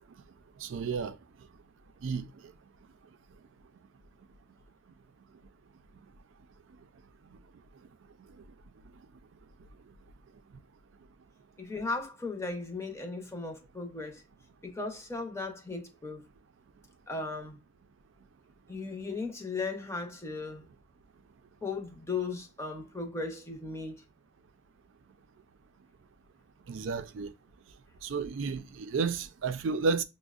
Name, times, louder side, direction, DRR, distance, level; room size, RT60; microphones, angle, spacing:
voice 1, 0.6-1.2 2.0-2.3 26.7-27.3 28.0-30.0, right 5 dB, 80° right, 0.4 m, -31 dB
voice 2, 11.6-14.2 14.6-16.2 17.1-17.6 18.7-20.7 21.6-24.0, left 3 dB, 15° left, 0.6 m, -36 dB
6.0 x 2.1 x 2.4 m
head